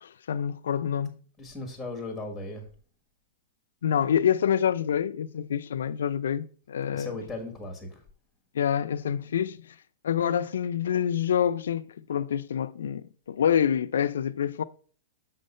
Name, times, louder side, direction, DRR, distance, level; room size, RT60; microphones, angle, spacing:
voice 1, 0.0-1.1 3.8-7.1 8.5-9.6 10.0-14.6, left 8 dB, 90° left, 0.4 m, -27 dB
voice 2, 1.4-2.6 6.9-8.0, left 2 dB, ahead, 1.4 m, -37 dB
6.4 x 3.7 x 5.4 m
supercardioid pair, 170°, 0 cm